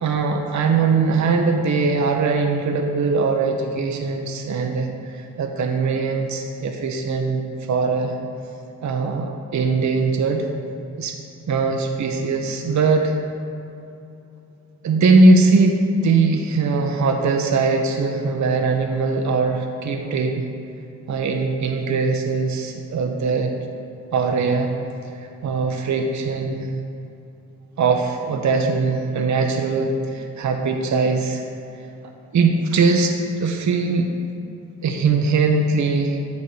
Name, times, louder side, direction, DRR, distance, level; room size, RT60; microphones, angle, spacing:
voice 1, 0.0-4.9 5.2-7.4 7.7-8.2 8.8-10.4 11.0-11.2 11.5-13.1 14.8-20.4 21.1-23.5 24.1-24.7 25.4-26.7 27.8-31.4 32.3-34.1 34.8-36.2, right 4 dB, 40° right, 3 dB, 0.9 m, -20 dB
9.5 x 4.1 x 6.6 m, 2.7 s
hypercardioid pair, 40°, 46 cm